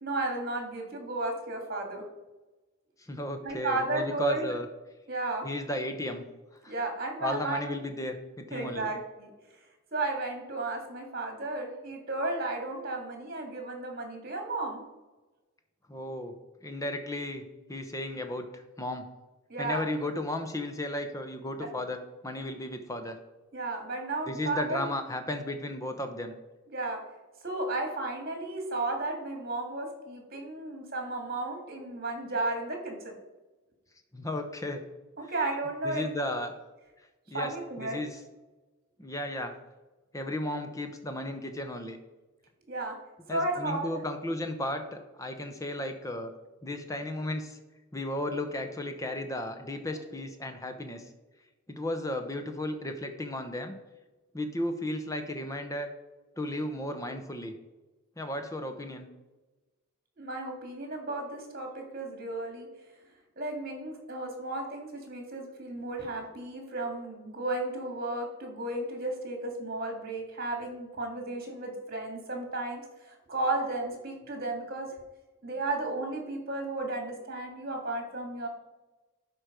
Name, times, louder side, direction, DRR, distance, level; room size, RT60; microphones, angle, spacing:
voice 1, 0.0-2.0 3.4-4.5 5.1-5.5 6.7-7.7 8.5-9.3 9.9-14.8 19.5-19.8 21.6-21.7 23.5-24.8 26.7-27.0 27.4-33.1 35.2-36.1 37.3-38.0 42.7-42.9 43.3-43.9 49.9-50.1 60.2-62.7 63.4-74.9 75.4-78.5, right 2 dB, 45° right, 3 dB, 2.1 m, -34 dB
voice 2, 3.1-4.7 5.4-6.2 6.6-6.7 7.2-8.9 15.9-16.3 16.6-17.4 17.7-19.0 19.6-23.2 24.3-26.3 34.1-34.8 35.2-35.3 35.8-36.5 37.3-38.2 39.0-39.6 40.1-42.0 43.3-46.3 46.6-47.6 47.9-51.0 51.7-53.7 54.3-55.9 56.4-57.6 58.2-59.1, left 1 dB, 15° left, 6 dB, 0.8 m, -34 dB
11.5 x 4.6 x 5.1 m, 1.1 s
head